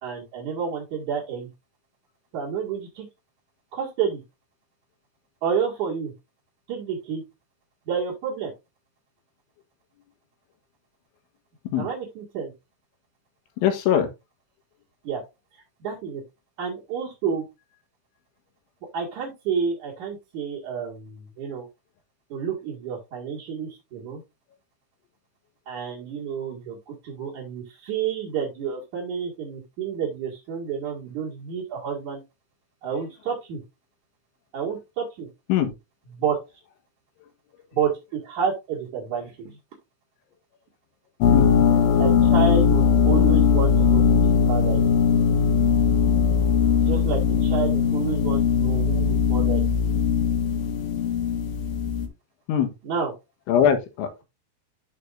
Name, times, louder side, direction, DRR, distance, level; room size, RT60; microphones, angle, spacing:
voice 1, 0.0-1.5 2.3-3.1 3.7-4.2 5.4-6.1 6.7-7.2 7.9-8.5 11.8-12.5 15.0-15.2 15.5-16.2 16.6-17.5 18.9-21.7 22.3-24.2 25.7-32.2 32.8-33.6 34.5-35.3 36.1-36.4 37.7-39.6 42.0-45.0 46.8-49.9 52.8-53.1, right 7 dB, 50° right, 2.7 m, -30 dB
voice 2, 13.6-14.1 35.5-35.7 41.3-41.5 52.5-52.7 53.5-54.1, left 9 dB, 85° left, 3.8 m, -21 dB
sound 1, 41.2-52.1, left 6 dB, 65° left, 2.5 m, -20 dB
11.5 x 4.5 x 2.6 m
omnidirectional pair, 5.3 m